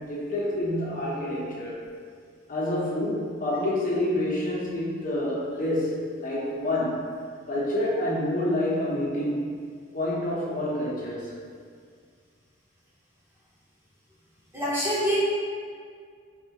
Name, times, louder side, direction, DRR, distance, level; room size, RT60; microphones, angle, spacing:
voice 1, 0.0-1.8 2.5-7.1 7.5-9.5 9.9-11.3, left 1 dB, 50° left, -5 dB, 0.8 m, -28 dB
voice 2, 14.5-15.2, equal, 15° right, -10 dB, 0.9 m, -25 dB
4.1 x 2.4 x 2.8 m, 2.1 s
head